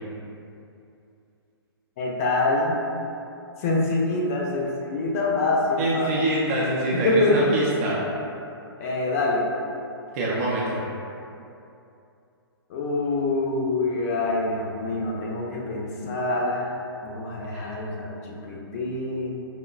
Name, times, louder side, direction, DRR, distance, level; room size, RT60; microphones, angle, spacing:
voice 1, 2.0-2.8 3.6-6.1 6.9-7.4 8.8-9.5 12.7-16.7 17.0-19.3, left 2 dB, 35° left, -2 dB, 0.5 m, -25 dB
voice 2, 5.8-8.0 10.1-10.8 17.5-17.8, right 1 dB, 35° right, -6 dB, 0.5 m, -25 dB
5.1 x 2.1 x 2.3 m, 2.6 s
figure-of-eight pair, 125°, 13 cm